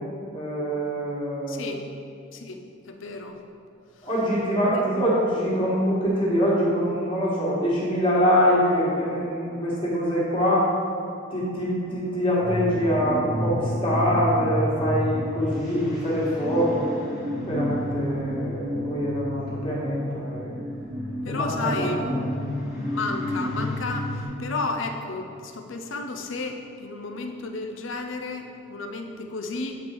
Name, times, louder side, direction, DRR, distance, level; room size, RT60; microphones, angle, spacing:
voice 1, 0.3-1.7 4.0-10.7 11.3-16.9 17.4-20.5 21.3-22.2, equal, 25° left, -7 dB, 1.7 m, -24 dB
voice 2, 1.5-1.8 2.3-2.6 2.9-3.4 21.2-22.0 22.9-29.7, left 3 dB, 70° left, 5 dB, 0.6 m, -32 dB
sound 1, 12.4-24.2, left 1 dB, ahead, 1.3 m, -30 dB
8.1 x 4.3 x 4.7 m, 2.6 s
head